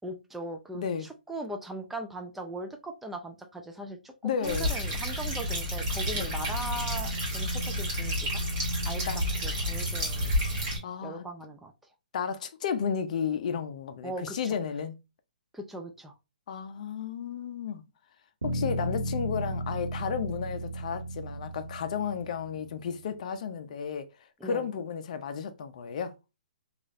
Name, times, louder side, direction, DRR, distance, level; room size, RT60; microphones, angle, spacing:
voice 1, 0.0-8.4 8.8-10.4 11.0-11.7 14.0-14.4 15.5-16.1 24.4-24.7, right 1 dB, 5° right, 0.4 m, -39 dB
voice 2, 0.7-1.1 4.2-4.7 6.1-6.3 9.0-9.2 10.8-11.2 12.1-15.0 16.5-17.8 18.5-24.1 24.4-26.2, left 7 dB, 50° left, 0.5 m, -33 dB
sound 1, 4.4-10.8, equal, 25° right, 1.4 m, -30 dB
Bass guitar, 18.4-22.8, right 1 dB, 90° right, 1.0 m, -34 dB
3.1 x 2.4 x 2.5 m
hypercardioid pair, 145°, 5 cm